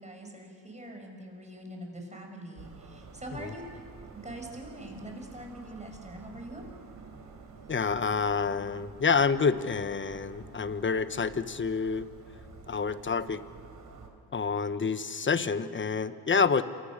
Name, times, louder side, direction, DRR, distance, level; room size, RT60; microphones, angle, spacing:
voice 1, 0.0-3.6 4.1-6.6, right 1 dB, 15° right, 2 dB, 7.3 m, -43 dB
sound 1, 2.5-14.1, right 4 dB, 50° right, 4.4 m, -49 dB
voice 2, 7.7-12.1 12.7-13.4 14.3-16.6, left 5 dB, 30° left, 12 dB, 1.2 m, -28 dB
28.0 x 24.5 x 6.7 m, 2.6 s
cardioid pair, 75°, 39 cm